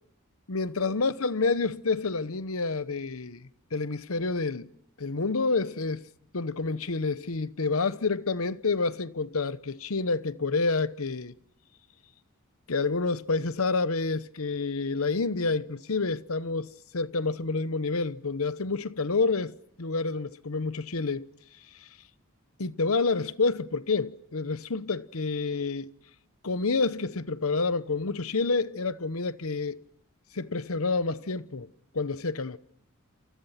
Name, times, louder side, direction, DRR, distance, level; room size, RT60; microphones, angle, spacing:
voice 1, 0.5-3.4 3.7-4.7 5.0-6.0 6.3-11.3 12.7-21.3 21.8-21.9 22.6-25.9 26.4-29.8 30.3-31.7 31.9-32.6, left 3 dB, 75° left, 1.0 m, -28 dB
28.5 x 28.5 x 5.8 m
head